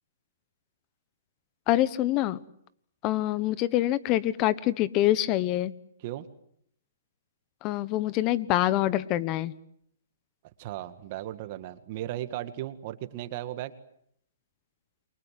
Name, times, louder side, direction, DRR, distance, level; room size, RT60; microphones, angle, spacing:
voice 1, 1.7-2.4 3.0-5.7 7.6-9.5, left 14 dB, 25° left, 17 dB, 1.2 m, -25 dB
voice 2, 10.6-13.7, right 14 dB, 40° right, 11 dB, 1.9 m, -36 dB
29.0 x 24.0 x 7.7 m, 0.69 s
hypercardioid pair, 150°, 0 cm